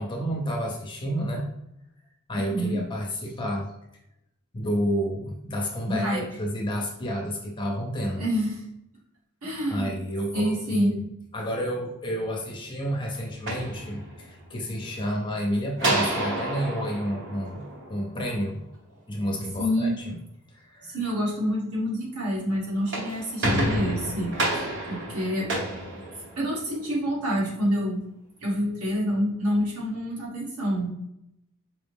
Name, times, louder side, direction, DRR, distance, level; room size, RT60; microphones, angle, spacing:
voice 1, 0.0-1.5 2.3-3.7 4.5-8.2 9.7-10.9 11.3-18.6 19.1-20.2 20.5-21.0, equal, 20° left, 0 dB, 0.7 m, -30 dB
voice 2, 2.3-2.8 5.8-6.2 8.1-8.6 9.4-9.9 10.3-11.0 19.6-20.0 20.8-25.5 26.4-28.0 28.4-30.9, equal, 85° right, -4 dB, 1.4 m, -27 dB
sound 1, 13.3-14.5 15.8-18.3 22.7-26.7, right 1 dB, 60° right, 0.9 m, -29 dB
4.6 x 2.0 x 3.5 m, 0.83 s
head